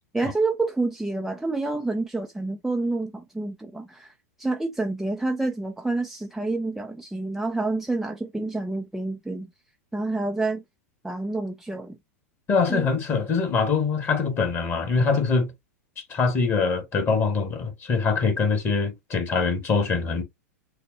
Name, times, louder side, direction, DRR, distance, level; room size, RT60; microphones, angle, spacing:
voice 1, 0.1-4.1 4.4-9.5 9.9-10.6 11.0-12.0 12.7-12.9, right 2 dB, 5° right, 0.5 m, -28 dB
voice 2, 12.5-15.5 16.1-20.2, left 4 dB, 30° left, 1.6 m, -23 dB
6.5 x 2.2 x 2.8 m
hypercardioid pair, 100°, 8 cm